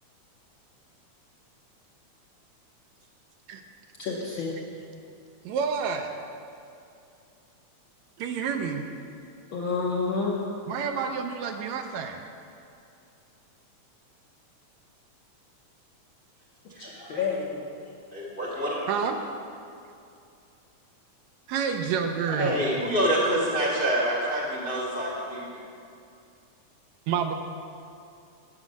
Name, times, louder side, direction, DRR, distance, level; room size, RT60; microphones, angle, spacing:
voice 1, 4.0-4.6 9.5-10.4 16.8-17.7, left 4 dB, 60° left, -3 dB, 1.3 m, -29 dB
voice 2, 5.4-6.1 8.2-8.8 10.7-12.2 18.9-19.2 21.5-22.7 27.1-27.3, right 6 dB, 80° right, 5 dB, 1.9 m, -28 dB
voice 3, 16.7-17.2 18.1-18.9 22.3-25.6, equal, 40° left, -4 dB, 0.8 m, -27 dB
9.0 x 8.7 x 6.3 m, 2.5 s
omnidirectional pair, 3.4 m